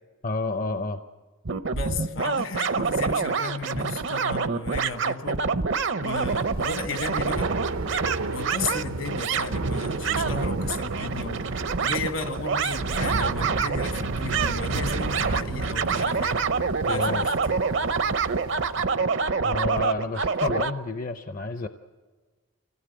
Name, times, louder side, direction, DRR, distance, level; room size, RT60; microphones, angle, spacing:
voice 1, 0.2-1.0 16.8-17.3 19.4-21.7, left 3 dB, 40° left, 9 dB, 0.6 m, -30 dB
sound 1, 1.5-20.7, right 5 dB, 60° right, 0.7 m, -27 dB
voice 2, 1.7-5.5 6.0-7.5 8.3-16.4 16.9-17.4, left 3 dB, 65° left, 8 dB, 1.3 m, -34 dB
Thunder / Rain, 6.1-19.0, right 2 dB, 90° right, 0.9 m, -34 dB
25.5 x 16.5 x 8.7 m, 1.4 s
head